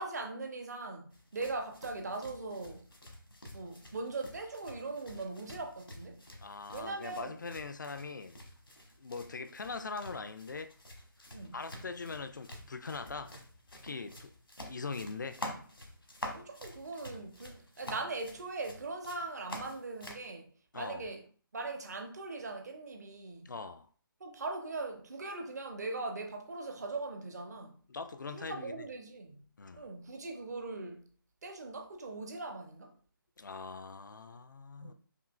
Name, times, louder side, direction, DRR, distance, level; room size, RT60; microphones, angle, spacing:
voice 1, 0.0-2.9 3.5-6.2 6.7-7.4 11.3-11.6 16.3-21.3 21.5-23.5 24.2-27.8 28.3-29.5 29.7-31.1 31.4-32.9 34.8-34.9, right 3 dB, 50° right, 0.7 m, -40 dB
sound 1, 1.1-20.3, left 1 dB, 80° left, 1.0 m, -48 dB
voice 2, 6.4-8.4 9.0-10.7 11.5-13.4 13.8-14.3 14.7-15.4 20.7-21.1 23.5-23.9 27.9-28.8 29.6-29.9 33.4-34.9, left 4 dB, 60° left, 0.4 m, -41 dB
5.0 x 2.4 x 2.2 m
figure-of-eight pair, 145°, 12 cm